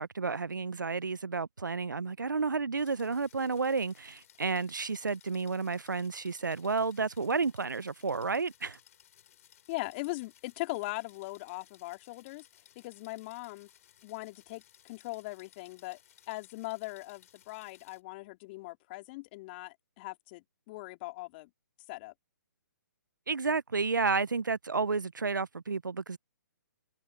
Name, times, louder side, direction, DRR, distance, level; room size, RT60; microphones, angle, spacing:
voice 1, 0.0-8.8 23.3-26.2, right 4 dB, 85° right, 0.9 m, -31 dB
sound 1, 2.8-18.0, left 11 dB, 50° left, 3.7 m, -61 dB
voice 2, 9.7-12.4 12.8-13.7 14.0-16.0 16.3-21.5 21.9-22.1, left 22 dB, 35° left, 2.6 m, -40 dB
figure-of-eight pair, 130°, 10 cm